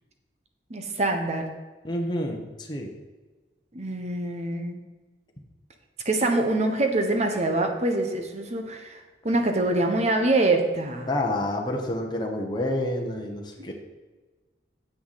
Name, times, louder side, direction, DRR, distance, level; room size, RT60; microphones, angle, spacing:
voice 1, 0.7-1.5 3.7-4.8 6.0-11.1 13.6-13.7, right 2 dB, 40° right, 4 dB, 1.1 m, -25 dB
voice 2, 1.8-2.9 11.1-13.7, left 1 dB, 25° left, 1 dB, 1.0 m, -28 dB
9.3 x 7.8 x 4.2 m, 1.3 s
head